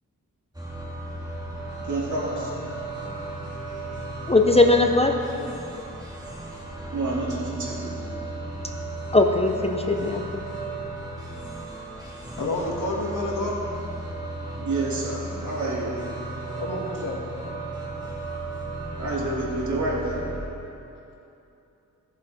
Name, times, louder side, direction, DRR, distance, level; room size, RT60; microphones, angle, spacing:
sound 1, 0.5-20.4, right 2 dB, 10° right, 1.8 m, -35 dB
voice 1, 1.8-2.5 6.9-8.2 14.6-15.9 19.0-20.2, right 2 dB, 65° right, -5 dB, 2.6 m, -29 dB
voice 2, 4.3-5.1 9.1-10.4, left 2 dB, 20° left, 4 dB, 0.5 m, -19 dB
voice 3, 12.4-13.6 15.4-15.5 16.6-17.2, left 2 dB, 90° left, -2 dB, 2.1 m, -29 dB
16.0 x 7.0 x 4.8 m, 2.8 s
wide cardioid pair, 145°, 31 cm